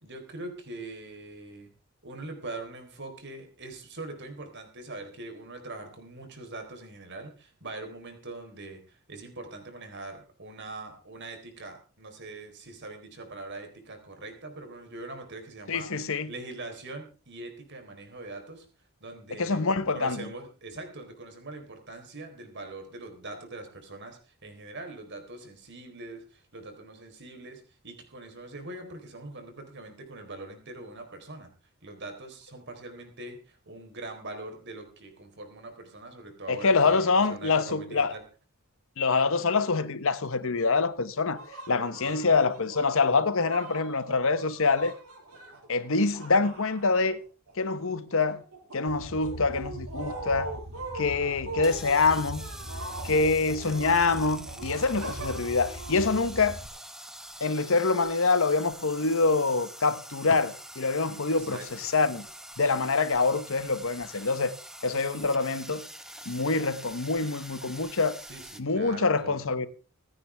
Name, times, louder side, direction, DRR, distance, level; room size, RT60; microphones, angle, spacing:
voice 1, 0.0-1.7 2.0-18.7 19.0-19.6 19.9-31.5 31.8-38.2 42.0-42.3 53.1-53.7 61.3-61.7 68.3-69.5, right 2 dB, 50° right, 4.0 m, -42 dB
voice 2, 15.7-16.3 19.4-20.3 36.5-38.1 39.0-41.4 41.7-44.9 45.7-47.2 47.6-48.4 48.7-50.5 50.9-52.5 53.0-56.6 57.4-62.2 62.6-64.5 64.8-65.9 66.3-68.2 68.6-69.7, left 4 dB, 65° left, 1.0 m, -25 dB
sound 1, 41.3-47.5 47.8-56.8, right 2 dB, 80° right, 5.5 m, -42 dB
sound 2, 48.9-56.7, equal, 30° right, 2.1 m, -42 dB
sound 3, 51.6-68.6, right 1 dB, ahead, 1.0 m, -45 dB
26.0 x 9.7 x 3.5 m
head